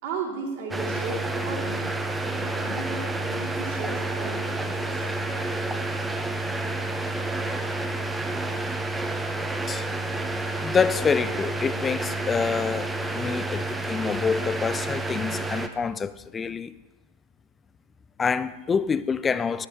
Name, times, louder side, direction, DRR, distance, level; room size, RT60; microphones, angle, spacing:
voice 1, 0.0-5.1, right 4 dB, 50° right, 2.8 m, -36 dB
sound 1, 0.7-15.7, right 2 dB, 5° right, 0.7 m, -29 dB
voice 2, 10.6-16.7 18.2-19.7, left 6 dB, 20° left, 0.4 m, -27 dB
12.0 x 10.5 x 4.2 m
figure-of-eight pair, 90°, 0 cm